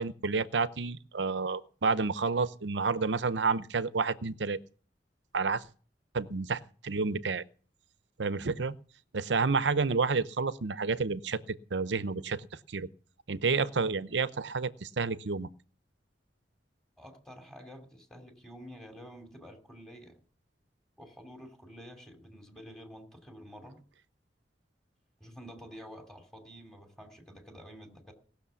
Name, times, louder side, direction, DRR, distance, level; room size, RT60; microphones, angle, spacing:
voice 1, 0.0-4.6 5.3-5.6 6.1-7.4 8.2-8.8 9.1-12.9 13.3-15.5, right 4 dB, 75° right, 0.7 m, -30 dB
voice 2, 17.0-20.2 21.0-23.8 25.2-28.1, equal, 5° left, 2.8 m, -49 dB
19.0 x 6.7 x 6.9 m
head